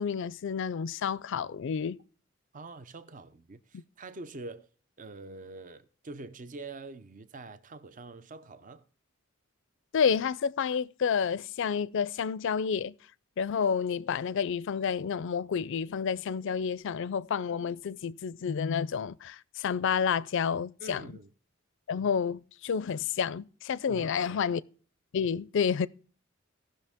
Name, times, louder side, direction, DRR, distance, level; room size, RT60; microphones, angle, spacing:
voice 1, 0.0-2.0 9.9-12.9 13.4-21.0 21.9-24.6 25.1-25.9, left 6 dB, 65° left, 0.4 m, -30 dB
voice 2, 2.5-4.7 5.0-8.8 20.8-21.3 23.9-24.6, right 2 dB, 40° right, 0.6 m, -45 dB
17.5 x 6.3 x 3.6 m
head